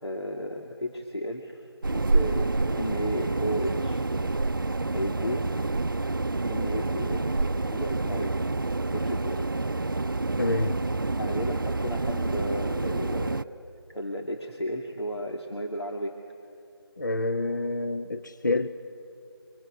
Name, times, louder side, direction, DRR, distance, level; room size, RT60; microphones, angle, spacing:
voice 1, 0.0-4.1 4.9-5.7 6.5-8.3 8.9-9.5 11.2-13.5 13.9-16.2, equal, 85° left, 2 dB, 2.5 m, -34 dB
sound 1, 1.8-13.4, right 2 dB, 55° right, 0.6 m, -28 dB
voice 2, 10.4-10.8 17.0-18.7, left 2 dB, 45° left, 9 dB, 0.7 m, -27 dB
25.5 x 23.5 x 9.7 m, 2.6 s
figure-of-eight pair, 180°, 13 cm